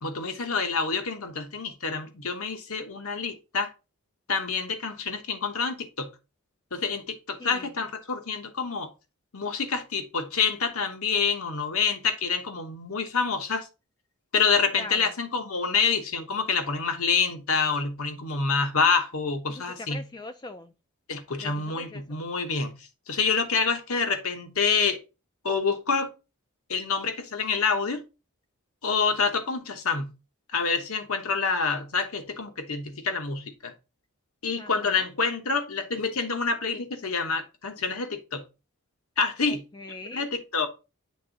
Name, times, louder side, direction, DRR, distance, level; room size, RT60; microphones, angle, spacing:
voice 1, 0.0-3.7 4.3-6.1 6.7-8.9 9.3-13.7 14.3-20.0 21.1-22.8 23.1-25.0 25.4-26.1 26.7-28.0 28.8-30.1 30.5-33.7 34.4-38.4 39.2-39.6 40.1-40.7, left 5 dB, 80° left, 1.1 m, -27 dB
voice 2, 7.4-7.7 14.8-15.1 19.5-20.7 21.4-22.0 34.6-35.1 39.5-40.3, left 2 dB, 20° left, 0.3 m, -42 dB
7.6 x 3.6 x 3.9 m
head